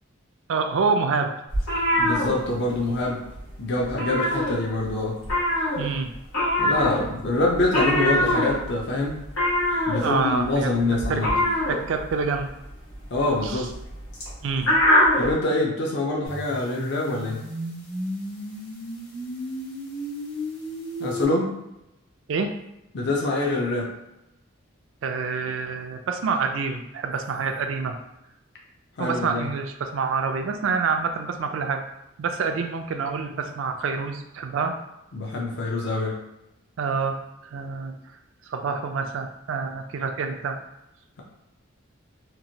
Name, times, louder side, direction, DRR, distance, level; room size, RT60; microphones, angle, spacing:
voice 1, 0.5-1.3 5.8-6.1 10.0-12.5 13.4-13.7 14.4-14.7 22.3-22.5 25.0-28.0 29.0-31.8 32.2-34.7 36.8-37.9 38.5-40.6, right 5 dB, 65° right, 6 dB, 0.3 m, -27 dB
sound 1, 1.5-3.0 3.3-3.5 3.8-4.9 5.2-15.3, left 1 dB, 75° left, 1.3 m, -23 dB
voice 2, 2.0-3.2 3.6-5.2 6.6-9.2 9.9-11.4 13.1-13.7 15.2-17.4 21.0-21.5 22.9-23.9 29.0-29.5 35.1-36.2, left 2 dB, 55° left, -1 dB, 0.5 m, -25 dB
sound 2, 16.3-21.3, equal, 90° left, 1.2 m, -34 dB
3.0 x 2.4 x 2.7 m, 0.89 s
head